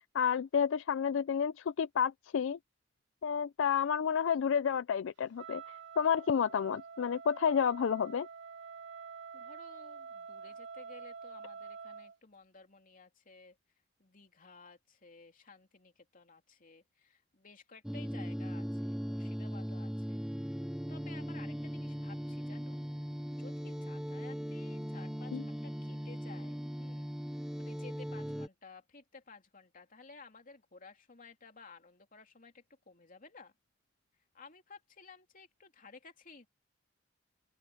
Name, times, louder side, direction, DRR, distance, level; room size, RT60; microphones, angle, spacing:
voice 1, 0.1-2.6 3.2-5.6 6.0-8.3 25.3-25.4, left 7 dB, 75° left, 0.4 m, -30 dB
Wind instrument woodwind instrument, 5.4-12.2, right 5 dB, 65° right, 3.6 m, -47 dB
voice 2, 9.3-13.6 14.0-22.8 23.3-33.5 34.3-36.5, left 4 dB, 45° left, 3.0 m, -55 dB
sound 1, 17.8-28.5, equal, 5° right, 0.6 m, -39 dB
open air
head